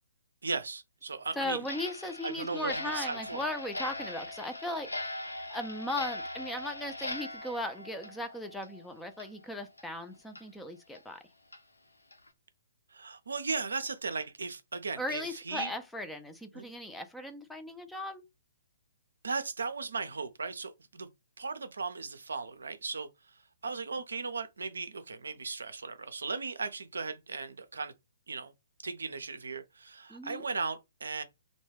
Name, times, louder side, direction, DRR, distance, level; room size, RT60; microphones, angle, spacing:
voice 1, 0.4-1.6 2.2-3.4 12.9-15.7 16.5-16.7 19.2-21.1 21.4-23.1 23.6-27.9 28.3-28.5 28.8-31.2, right 4 dB, 75° right, 0.4 m, -37 dB
voice 2, 1.4-11.2 15.0-18.2 30.1-30.4, left 1 dB, 5° left, 0.3 m, -38 dB
Clock, 1.6-8.8 9.1-9.3 9.8-9.9 10.4-10.5 10.9-11.0 11.5-11.6 12.1-12.3, left 2 dB, 90° left, 0.6 m, -40 dB
2.2 x 2.1 x 3.2 m
figure-of-eight pair, 130°, 0 cm